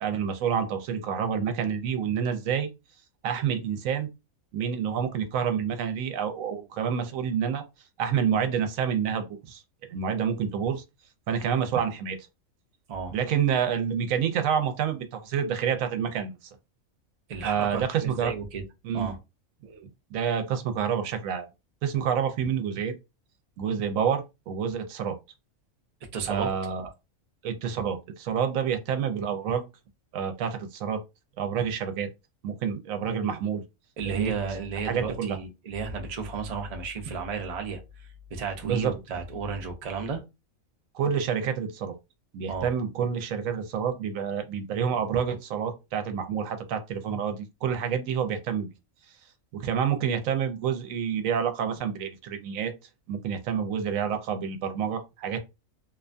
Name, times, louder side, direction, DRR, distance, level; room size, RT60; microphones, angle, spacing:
voice 1, 0.0-2.7 3.2-4.1 4.5-7.6 8.0-9.6 9.9-10.8 11.3-12.2 13.1-16.3 17.4-18.3 18.8-19.2 19.6-21.5 21.8-22.9 23.6-25.2 26.3-26.9 27.4-29.6 30.1-31.0 31.4-32.1 32.4-33.6 34.0-34.3 34.9-35.4 38.6-38.9 40.9-42.0 42.3-48.7 49.5-52.7 53.1-55.4, right 7 dB, 80° right, 1.0 m, -28 dB
voice 2, 17.3-18.6 18.9-19.2 26.1-26.5 34.0-40.2 42.5-42.7, right 5 dB, 50° right, 0.4 m, -33 dB
2.6 x 2.2 x 2.5 m
omnidirectional pair, 1.4 m